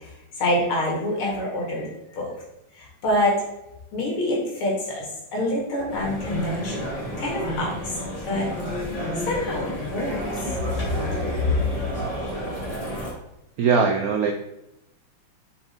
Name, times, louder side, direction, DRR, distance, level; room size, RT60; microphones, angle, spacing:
voice 1, 0.4-2.3 2.8-3.4 3.9-5.1 5.3-6.9 7.2-7.9 8.2-8.5 9.3-10.2 11.4-11.5, left 1 dB, 85° left, -3 dB, 3.0 m, -26 dB
sound 1, 5.9-13.1, equal, 15° left, 2.4 m, -30 dB
voice 2, 13.6-14.3, right 5 dB, 80° right, 4 dB, 0.8 m, -20 dB
5.6 x 5.1 x 4.4 m, 0.87 s
omnidirectional pair, 2.3 m